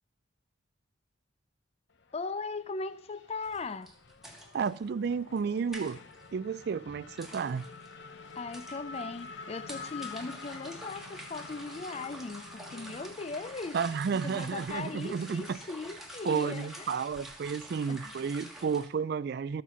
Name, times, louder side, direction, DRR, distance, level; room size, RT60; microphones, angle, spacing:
Race car auto racing / Accelerating revving vroom, 1.9-18.9, left 4 dB, 65° left, 0.9 m, -49 dB
voice 1, 2.1-3.9 8.4-13.8 14.1-17.0 17.9-18.1, left 3 dB, 30° left, 0.4 m, -39 dB
sound 1, 3.4-18.9, right 1 dB, ahead, 1.4 m, -48 dB
voice 2, 4.5-6.0 6.3-7.7 13.7-15.6 16.2-19.6, right 6 dB, 55° right, 0.3 m, -32 dB
12.5 x 7.4 x 5.6 m
head